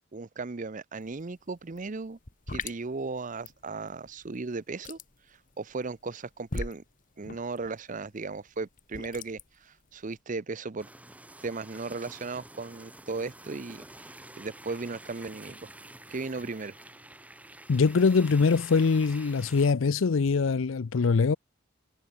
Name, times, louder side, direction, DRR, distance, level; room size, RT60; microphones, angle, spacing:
voice 1, 0.1-2.2 2.5-5.0 5.6-6.8 7.2-10.9 11.4-13.9 14.4-15.7 16.1-16.8, right 3 dB, 40° right, 0.6 m, -36 dB
sound 1, 1.0-1.2 1.5-10.2, left 3 dB, 40° left, 2.5 m, -41 dB
sound 2, 10.8-19.7, right 1 dB, 5° right, 5.2 m, -49 dB
voice 2, 17.7-21.4, left 4 dB, 75° left, 0.5 m, -23 dB
head